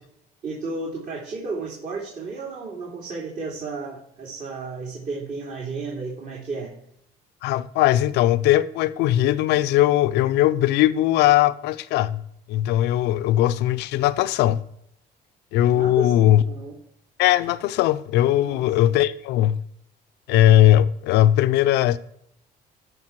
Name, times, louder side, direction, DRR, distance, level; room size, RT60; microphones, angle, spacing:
voice 1, 0.4-6.7 15.7-16.7 18.4-18.7, right 3 dB, 50° right, 2.9 m, -33 dB
voice 2, 7.4-12.2 12.5-14.6 15.5-16.4 17.2-19.6 20.3-22.0, left 13 dB, 90° left, 0.6 m, -19 dB
13.5 x 5.6 x 4.6 m
cardioid pair, 110°, 17 cm